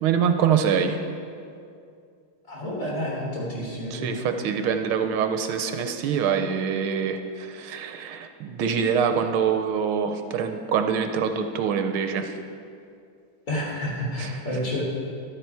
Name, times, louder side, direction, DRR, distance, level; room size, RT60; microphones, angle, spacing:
voice 1, 0.0-1.0 3.9-12.4 14.2-14.3, right 7 dB, 80° right, 7 dB, 1.6 m, -25 dB
voice 2, 2.5-4.2 13.5-14.8, equal, 35° left, -4 dB, 3.7 m, -29 dB
13.5 x 12.0 x 4.7 m, 2.4 s
omnidirectional pair, 2.4 m